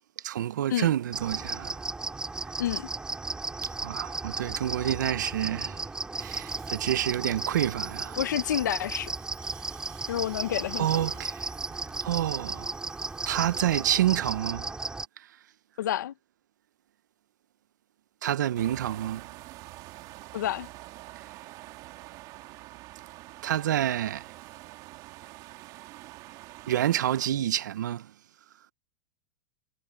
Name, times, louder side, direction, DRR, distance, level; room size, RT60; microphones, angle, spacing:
voice 1, 0.2-1.8 3.8-5.8 6.2-8.2 10.8-11.5 12.0-12.8 13.3-14.7 15.2-15.3 18.2-19.3 23.4-24.3 26.7-28.1, right 12 dB, 85° right, 0.7 m, -28 dB
sound 1, 1.1-15.1, right 3 dB, 10° right, 3.2 m, -35 dB
voice 2, 2.6-2.9 8.1-9.1 10.1-10.9 15.8-16.1 20.3-20.7, left 11 dB, 85° left, 1.3 m, -29 dB
sound 2, 6.2-13.8, right 23 dB, 55° right, 5.3 m, -53 dB
sound 3, 18.5-27.3, right 19 dB, 40° right, 2.6 m, -46 dB
supercardioid pair, 140°, 10 cm